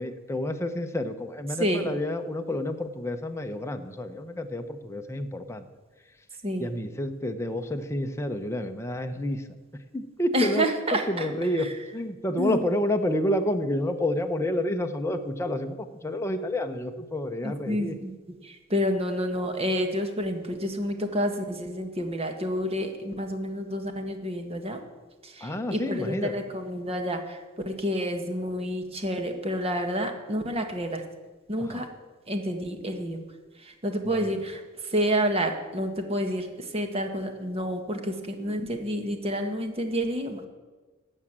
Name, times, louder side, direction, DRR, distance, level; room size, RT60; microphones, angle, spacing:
voice 1, 0.0-5.7 6.6-9.4 9.9-10.7 10.9-18.0 25.4-26.3 31.6-31.9 34.0-34.4, left 1 dB, 15° left, 6 dB, 0.8 m, -29 dB
voice 2, 1.6-1.9 6.4-6.7 10.3-11.3 11.6-11.7 12.4-12.6 17.4-18.1 18.4-24.8 25.2-27.4 27.6-31.0 31.5-31.9 32.3-33.2 33.6-34.6 34.9-36.5 36.7-40.4, equal, 30° right, 5 dB, 1.6 m, -29 dB
13.0 x 7.3 x 8.8 m, 1.3 s
head